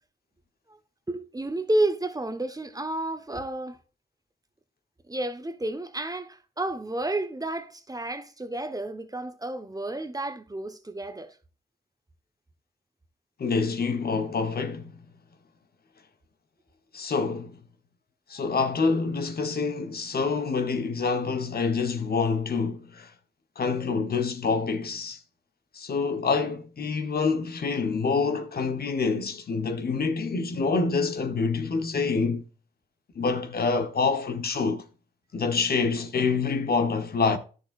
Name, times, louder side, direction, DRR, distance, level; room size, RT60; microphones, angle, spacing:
voice 1, 1.1-3.8 5.1-11.3, right 1 dB, 20° right, 1.2 m, -31 dB
voice 2, 13.4-14.9 16.9-17.6 18.3-23.1 23.6-25.2 25.7-32.5 33.1-34.9 35.3-37.4, left 4 dB, 55° left, 1.2 m, -26 dB
10.5 x 6.4 x 2.5 m
cardioid pair, 55°, 18 cm